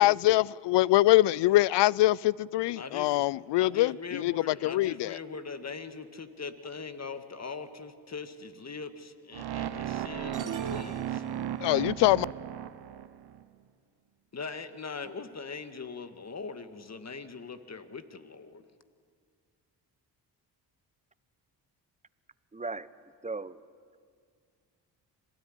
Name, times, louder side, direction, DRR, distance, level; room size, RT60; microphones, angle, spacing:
voice 1, 0.0-5.2 11.6-12.3, left 17 dB, 70° left, 0.5 m, -24 dB
voice 2, 2.8-3.3 3.6-11.2 11.6-11.7 14.3-18.6, left 4 dB, 35° left, 1.9 m, -41 dB
sound 1, 9.3-13.4, right 11 dB, 60° right, 1.1 m, -35 dB
sound 2, 10.3-11.9, right 7 dB, 45° right, 1.4 m, -41 dB
voice 3, 22.5-22.9 23.2-23.6, right 3 dB, 15° right, 1.0 m, -36 dB
25.5 x 17.5 x 10.0 m
supercardioid pair, 60°, 44 cm